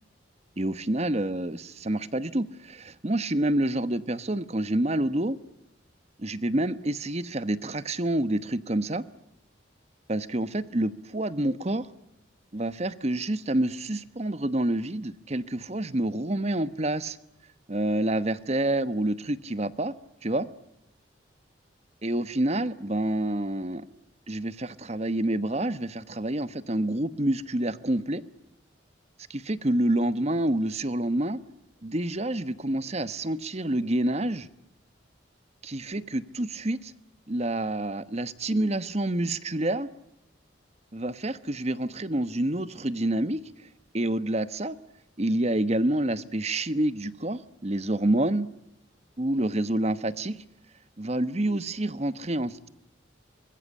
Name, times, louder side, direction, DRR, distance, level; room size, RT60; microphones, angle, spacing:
voice 1, 0.6-5.4 6.2-9.0 10.1-11.9 12.5-17.2 17.7-19.9 20.2-20.5 22.0-23.9 24.3-28.2 29.3-31.4 31.8-34.5 35.6-36.9 37.3-39.9 40.9-43.4 43.9-44.8 45.2-48.5 49.2-50.4 51.0-52.7, right 1 dB, 35° right, 14 dB, 1.1 m, -28 dB
25.0 x 21.0 x 8.7 m, 0.82 s
head